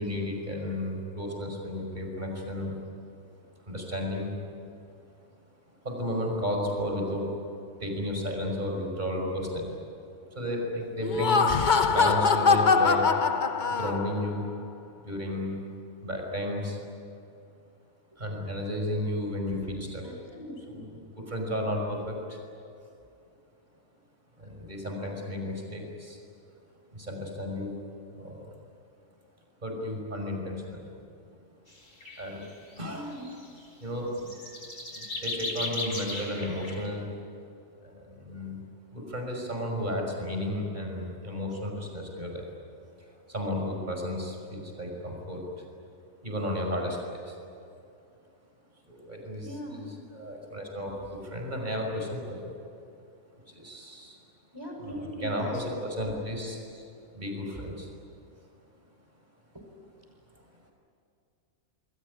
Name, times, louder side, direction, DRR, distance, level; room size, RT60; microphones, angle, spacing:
voice 1, 0.0-2.7 3.6-4.4 5.8-7.3 7.8-9.7 10.3-11.5 11.9-13.1 13.7-14.5 15.0-15.6 16.0-16.8 18.2-20.0 20.7-22.4 24.4-26.2 26.9-27.8 28.1-28.5 29.6-30.9 32.2-32.4 32.8-33.1 33.8-34.1 34.9-37.1 37.8-38.6 38.9-42.5 43.3-45.6 46.2-47.4 48.9-52.5 53.5-54.2 54.8-57.9, left 1 dB, 35° right, 1 dB, 5.9 m, -33 dB
Laughter, 11.0-14.3, left 5 dB, 40° left, 1.1 m, -23 dB
voice 2, 20.0-20.8 32.9-33.3 49.4-49.9 54.5-55.6 59.5-59.6, equal, 20° right, 1 dB, 6.3 m, -40 dB
sound 1, 31.7-31.8 32.0-32.5 32.8-33.6 34.1-36.9, left 2 dB, 55° left, 5.3 m, -36 dB
28.5 x 21.5 x 9.7 m, 2.6 s
omnidirectional pair, 1.3 m